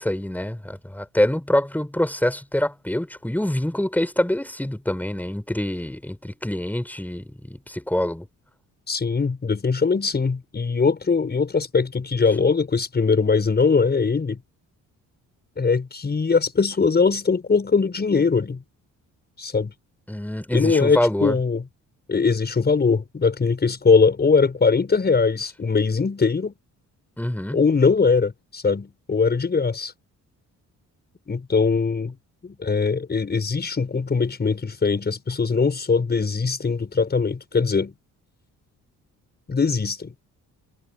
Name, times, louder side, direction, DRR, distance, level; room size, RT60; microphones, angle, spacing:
voice 1, 0.0-8.3 20.1-21.4 27.2-27.6, left 1 dB, 5° left, 4.7 m, -25 dB
voice 2, 8.9-14.4 15.6-18.6 19.4-19.7 20.5-21.6 22.1-26.5 27.5-29.9 31.3-32.2 32.4-37.9 39.5-40.1, left 4 dB, 30° left, 5.8 m, -21 dB
cardioid pair, 100°, 32 cm